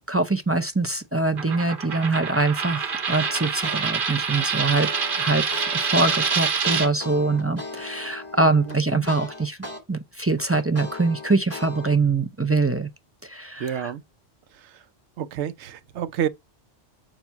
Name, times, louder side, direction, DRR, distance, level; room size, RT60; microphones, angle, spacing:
voice 1, 0.1-4.9 5.2-9.6 9.9-12.9 13.2-13.9, right 3 dB, 20° right, 0.4 m, -24 dB
Coin (dropping), 1.4-6.9, right 5 dB, 50° right, 1.1 m, -26 dB
sound 1, 3.1-3.8 4.2-9.8 10.2-12.0, left 2 dB, 10° left, 2.6 m, -37 dB
voice 2, 8.7-9.1 13.6-14.0 15.2-16.3, right 9 dB, 75° right, 0.9 m, -29 dB
7.1 x 2.6 x 5.7 m
omnidirectional pair, 1.2 m